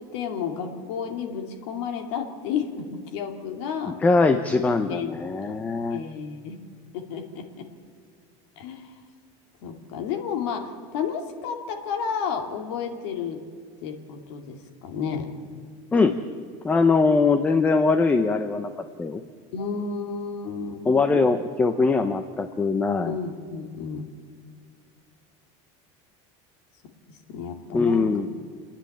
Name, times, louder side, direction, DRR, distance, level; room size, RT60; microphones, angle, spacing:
voice 1, 0.0-2.7 3.1-4.0 4.9-6.6 6.9-7.7 8.6-8.9 9.6-13.4 13.8-15.3 19.5-21.0 23.1-24.1 27.3-28.1, left 6 dB, 75° left, 4 dB, 2.4 m, -31 dB
voice 2, 3.9-6.0 15.9-16.2 16.6-18.7 19.0-19.2 20.8-23.1 27.7-28.3, left 4 dB, 10° left, 9 dB, 0.6 m, -21 dB
29.5 x 10.0 x 8.6 m, 2.1 s
cardioid pair, 175°, 15 cm